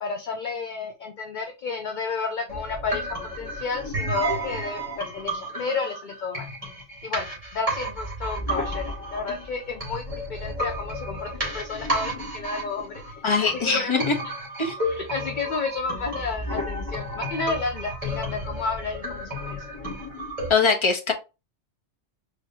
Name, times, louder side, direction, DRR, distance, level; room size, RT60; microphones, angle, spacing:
voice 1, 0.0-3.1 3.4-6.4 7.0-7.3 7.5-13.0 13.4-14.1 14.9-19.7, left 4 dB, 50° left, 0.7 m, -31 dB
sound 1, 2.5-20.5, equal, 30° right, 2.2 m, -32 dB
voice 2, 13.2-14.2 14.6-14.8 20.5-21.1, left 4 dB, 25° left, 0.9 m, -22 dB
4.7 x 2.8 x 2.8 m
omnidirectional pair, 1.2 m